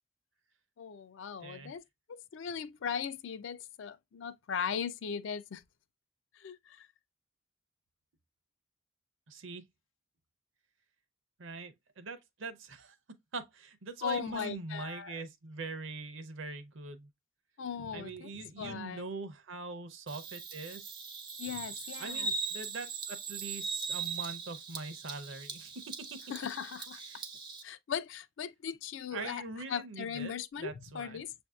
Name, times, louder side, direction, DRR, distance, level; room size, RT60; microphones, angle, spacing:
voice 1, 0.8-1.8 2.1-5.6 6.3-6.9 14.0-15.2 17.6-19.1 21.4-22.3 26.3-27.0 27.6-29.4 29.7-31.3, left 7 dB, 65° left, 0.4 m, -38 dB
voice 2, 1.4-1.7 9.3-9.6 11.4-13.0 13.3-17.1 17.9-21.0 22.0-25.8 26.1-26.2 27.1-27.2 29.1-31.2, right 3 dB, 65° right, 0.6 m, -43 dB
Bird vocalization bird call bird song, 20.1-27.6, right 5 dB, 25° right, 0.4 m, -40 dB
6.9 x 2.6 x 2.3 m
head